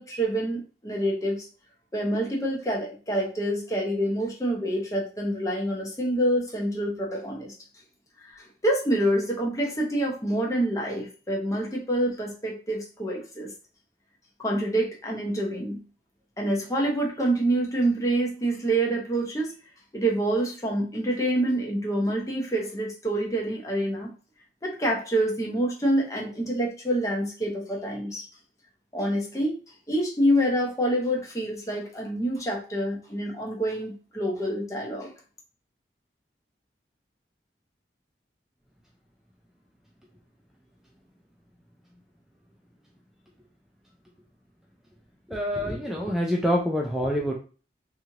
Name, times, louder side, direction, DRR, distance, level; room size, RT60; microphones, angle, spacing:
voice 1, 0.0-1.5 1.9-7.5 8.2-13.5 14.4-15.8 16.4-19.5 19.9-24.1 24.6-28.2 28.9-29.6 29.9-35.1, right 1 dB, 20° left, -1 dB, 0.7 m, -27 dB
voice 2, 45.3-47.3, equal, ahead, -1 dB, 0.3 m, -26 dB
3.0 x 2.4 x 2.8 m, 0.36 s
head